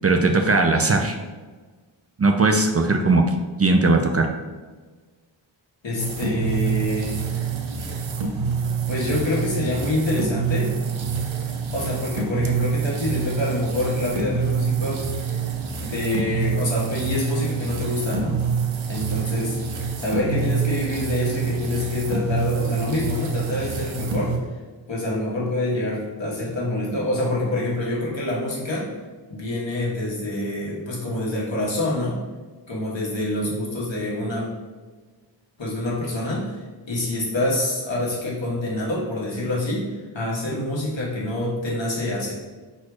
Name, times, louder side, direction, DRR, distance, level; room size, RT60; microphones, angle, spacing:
voice 1, 0.0-1.2 2.2-3.3 3.6-4.3, right 3 dB, 35° right, 4 dB, 0.5 m, -18 dB
voice 2, 5.8-7.2 8.9-10.7 11.7-15.1 15.8-18.4 18.9-19.6 20.0-24.4 24.9-28.9 29.3-32.2 32.7-34.5 35.6-42.3, left 1 dB, 75° left, -5 dB, 1.5 m, -26 dB
sound 1, 6.0-24.4, right 6 dB, 80° right, 0.7 m, -26 dB
4.6 x 4.2 x 2.4 m, 1.4 s
cardioid pair, 45°, 46 cm